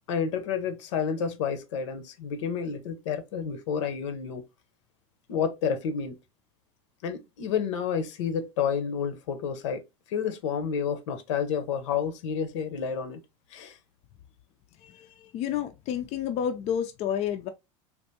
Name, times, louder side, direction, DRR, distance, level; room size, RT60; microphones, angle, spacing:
voice 1, 0.1-4.4 5.3-6.2 7.0-9.8 10.1-13.2 13.5-13.8, left 7 dB, 80° left, 0.8 m, -30 dB
voice 2, 14.8-17.5, left 9 dB, 45° left, 0.4 m, -30 dB
3.5 x 2.6 x 2.7 m
supercardioid pair, 105°, 15 cm